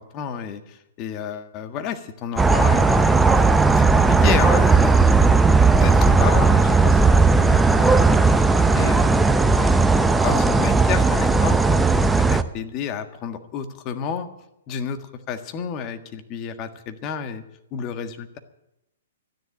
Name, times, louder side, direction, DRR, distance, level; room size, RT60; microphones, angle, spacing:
voice 1, 0.1-3.4 3.8-5.5 5.8-14.3 14.7-15.0 15.3-17.4 17.7-18.4, left 7 dB, 35° left, 8 dB, 1.6 m, -31 dB
sound 1, 2.4-12.4, right 3 dB, 5° right, 0.7 m, -16 dB
13.0 x 10.5 x 9.9 m, 0.87 s
hypercardioid pair, 120°, 0 cm